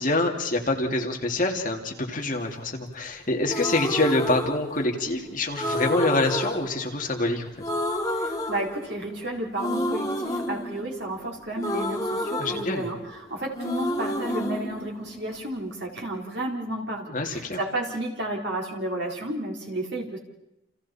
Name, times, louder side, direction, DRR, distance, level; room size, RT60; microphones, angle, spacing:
voice 1, 0.0-7.7 12.4-12.9 17.1-17.6, left 2 dB, 40° left, 1 dB, 2.5 m, -26 dB
sound 1, 3.4-5.1 5.6-7.3 7.6-9.2 9.6-13.3 13.5-15.6, left 1 dB, 20° left, 1.8 m, -30 dB
voice 2, 8.2-20.2, right 1 dB, 60° right, -1 dB, 4.1 m, -32 dB
29.5 x 28.5 x 4.3 m, 0.90 s
head